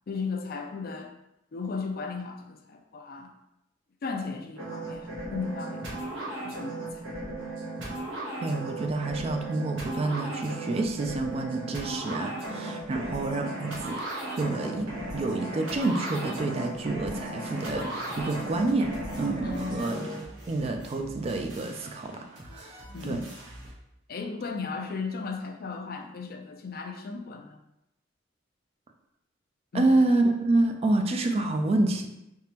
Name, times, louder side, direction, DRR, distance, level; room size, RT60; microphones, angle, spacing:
voice 1, 0.1-1.1 1.5-3.3 4.0-7.1 12.9-13.0 19.4-19.8 22.9-23.3 24.1-27.6 29.7-29.9, left 4 dB, 50° left, 4 dB, 0.4 m, -36 dB
sound 1, 4.6-20.2, right 1 dB, 85° right, 1.1 m, -36 dB
voice 2, 8.4-17.9 18.2-18.9 19.2-20.0 20.5-23.2 29.7-32.1, right 2 dB, 30° right, 4 dB, 0.3 m, -28 dB
sound 2, 17.5-23.7, right 1 dB, 70° right, 1.4 m, -46 dB
3.6 x 2.9 x 2.8 m, 0.85 s
head